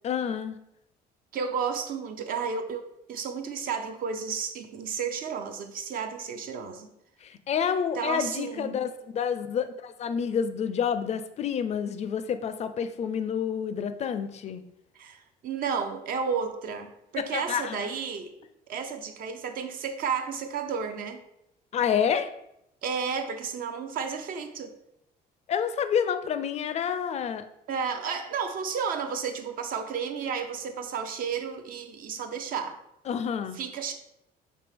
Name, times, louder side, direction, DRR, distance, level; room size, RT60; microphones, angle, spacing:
voice 1, 0.0-0.6 7.2-14.6 17.2-17.9 21.7-22.3 25.5-27.5 33.1-33.6, left 7 dB, 40° left, 11 dB, 0.4 m, -28 dB
voice 2, 1.3-6.9 7.9-8.8 15.0-18.3 18.7-21.2 22.8-24.7 27.7-32.8 33.6-33.9, right 6 dB, 60° right, 6 dB, 0.5 m, -32 dB
5.1 x 2.7 x 3.5 m, 0.80 s
cardioid pair, 110°, 17 cm